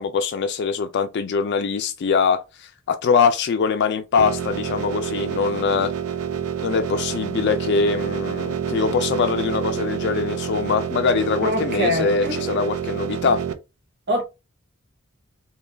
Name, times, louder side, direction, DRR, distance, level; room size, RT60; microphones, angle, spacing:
voice 1, 0.0-5.9 6.6-13.4, left 5 dB, 55° left, 0.3 m, -22 dB
sound 1, 4.2-13.5, right 8 dB, 80° right, 0.5 m, -28 dB
voice 2, 11.4-12.3 14.1-14.2, left 1 dB, 55° right, 1.1 m, -24 dB
3.7 x 2.3 x 3.3 m
head